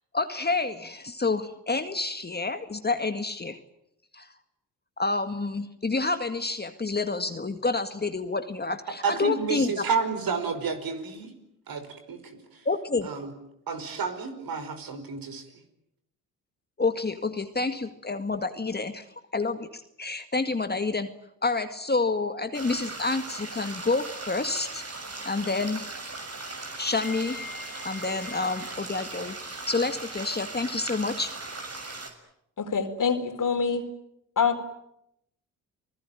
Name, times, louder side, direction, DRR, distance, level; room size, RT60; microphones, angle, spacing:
voice 1, 0.1-3.6 4.1-4.3 5.0-9.8 12.7-13.1 16.8-19.1 19.3-21.1 21.4-24.8 25.3-25.9 26.8-31.3, left 3 dB, 25° left, 8 dB, 1.9 m, -28 dB
voice 2, 9.0-11.3 11.7-12.4 13.0-13.3 13.7-15.4, right 5 dB, 55° right, 9 dB, 5.2 m, -30 dB
sound 1, 22.5-32.1, right 3 dB, 35° right, 6.7 m, -38 dB
voice 3, 32.6-33.9 34.4-34.6, left 6 dB, 50° left, 7 dB, 4.3 m, -25 dB
30.0 x 19.5 x 9.1 m, 0.81 s
hypercardioid pair, 55°, 41 cm